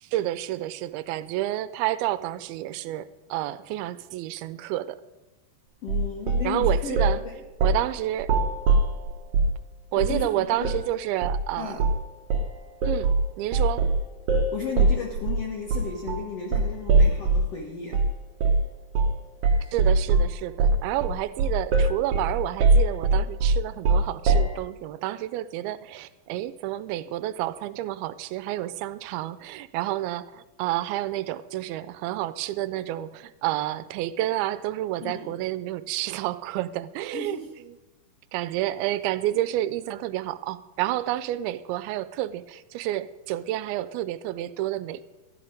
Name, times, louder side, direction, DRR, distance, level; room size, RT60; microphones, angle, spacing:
voice 1, 0.0-5.0 6.4-7.2 7.6-8.3 9.9-11.8 12.8-13.1 13.4-13.9 19.7-37.4 37.7-37.8 38.3-45.0, right 14 dB, 85° right, 14 dB, 2.4 m, -30 dB
voice 2, 5.8-7.4 10.0-10.7 11.6-11.9 14.5-18.0 35.0-35.4 37.1-37.5, left 5 dB, 70° left, 0 dB, 1.4 m, -34 dB
sound 1, 5.9-7.2 7.6-7.9 8.2-9.6 10.0-10.3 10.6-10.8 11.2-11.5 11.8-12.0 12.3-17.5 17.9-18.1 18.4-18.7 18.9-19.2 19.4-24.6, right 3 dB, 70° right, 1.8 m, -22 dB
13.5 x 11.0 x 5.0 m, 1.1 s
omnidirectional pair, 4.3 m